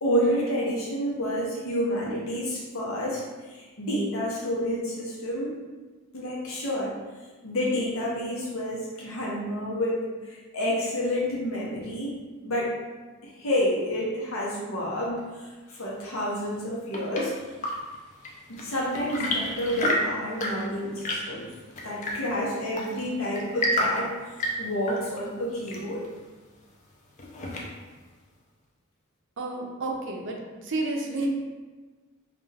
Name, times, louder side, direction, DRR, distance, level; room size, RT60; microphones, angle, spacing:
voice 1, 0.0-5.5 6.1-6.9 7.4-12.2 12.4-12.7 13.2-17.3 18.5-21.5 21.8-24.1 24.6-26.1, equal, 85° left, -4 dB, 0.8 m, -29 dB
Chirp tweet / Engine / Tap, 16.5-28.0, left 1 dB, 35° left, 0.4 m, -32 dB
voice 2, 29.4-30.4 30.6-31.3, right 2 dB, 65° right, 1 dB, 0.5 m, -30 dB
2.4 x 2.3 x 3.2 m, 1.3 s
head